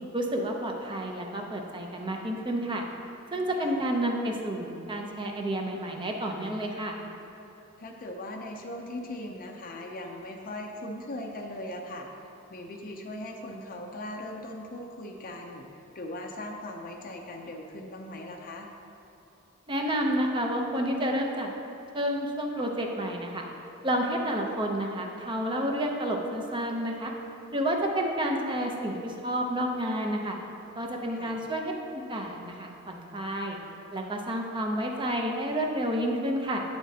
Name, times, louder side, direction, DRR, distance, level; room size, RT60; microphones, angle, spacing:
voice 1, 0.1-2.8 3.3-7.0 19.7-21.5 21.9-23.5 23.8-27.1 27.5-30.4 30.7-33.6 33.9-36.6, right 1 dB, 25° right, 1 dB, 0.6 m, -30 dB
voice 2, 7.8-12.1 12.5-15.7 15.9-18.7 31.1-31.4, left 1 dB, 40° left, 1 dB, 0.5 m, -39 dB
8.3 x 7.2 x 2.8 m, 3.0 s
head